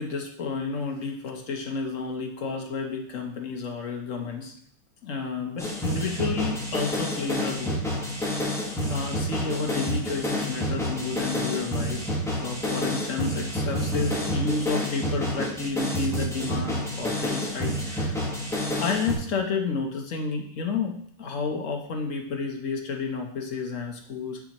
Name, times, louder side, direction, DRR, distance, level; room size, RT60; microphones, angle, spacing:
voice 1, 0.0-4.5 5.0-7.8 8.2-12.1 12.4-18.2 18.8-24.4, left 4 dB, 55° left, 3 dB, 0.9 m, -31 dB
sound 1, 5.6-19.2, left 1 dB, ahead, 1.0 m, -29 dB
9.6 x 4.2 x 2.9 m, 0.66 s
omnidirectional pair, 2.1 m